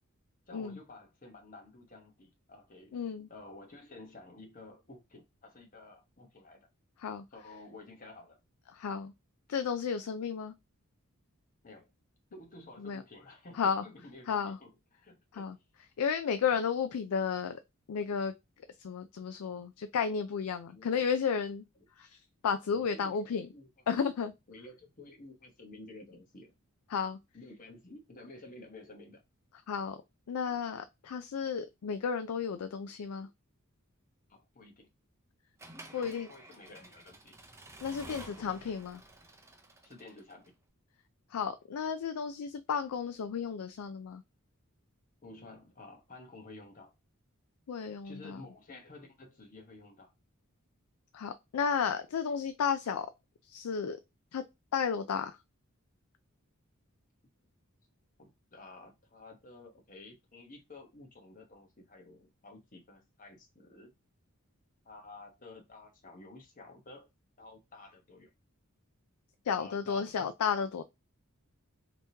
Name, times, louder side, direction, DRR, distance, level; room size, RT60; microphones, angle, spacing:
voice 1, 0.5-3.0 3.3-6.7 7.3-8.4 11.6-11.9 12.3-15.6 16.5-16.6 20.7-21.0 21.8-21.9 22.7-23.7 24.5-26.5 27.3-29.2 34.3-34.9 35.9-37.3 38.0-38.7 39.8-40.5 45.2-46.9 48.0-50.1 58.5-63.9 64.8-67.1 67.4-68.3 69.6-70.3, left 2 dB, 35° left, 1.1 m, -52 dB
voice 2, 2.9-3.3 7.0-7.2 8.7-9.1 9.5-10.5 12.8-13.0 13.5-13.8 14.3-14.6 15.3-15.5 16.0-17.6 17.9-18.3 18.8-21.6 22.0-22.2 22.4-23.5 23.9-24.3 26.9-27.2 29.7-30.0 30.3-33.3 35.9-36.3 37.8-39.0 41.3-44.2 47.7-48.4 51.1-53.1 53.5-54.0 54.3-54.4 54.7-55.4 69.5-70.8, left 6 dB, 80° left, 0.4 m, -33 dB
Accelerating revving vroom / Mechanisms, 35.6-40.5, right 2 dB, 15° right, 0.6 m, -51 dB
3.4 x 2.9 x 2.8 m
head